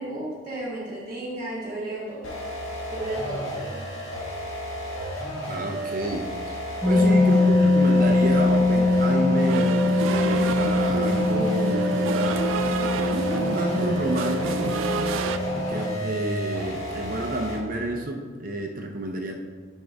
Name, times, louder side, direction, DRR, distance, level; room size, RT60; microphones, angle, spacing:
voice 1, 0.0-2.3 2.9-3.8 6.9-7.3, right 1 dB, 20° right, -6 dB, 1.8 m, -33 dB
sound 1, 2.2-17.7, equal, 80° left, 1.6 m, -33 dB
voice 2, 5.5-12.5 13.1-14.8 15.5-19.3, right 1 dB, 45° right, 2 dB, 0.7 m, -30 dB
sound 2, 6.8-16.0, left 2 dB, ahead, 0.7 m, -22 dB
sound 3, 9.5-15.4, right 5 dB, 75° right, 0.4 m, -30 dB
10.0 x 5.4 x 3.5 m, 1.5 s
head